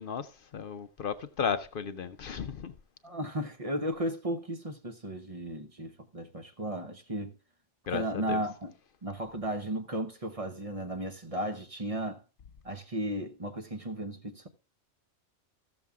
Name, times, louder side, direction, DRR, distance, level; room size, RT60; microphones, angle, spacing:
voice 1, 0.0-2.7 7.9-8.4, left 6 dB, 55° left, 0.7 m, -34 dB
voice 2, 3.0-7.3 7.9-8.7 9.0-12.2 12.6-14.5, right 1 dB, 30° right, 0.8 m, -35 dB
14.5 x 6.9 x 3.5 m
omnidirectional pair, 1.3 m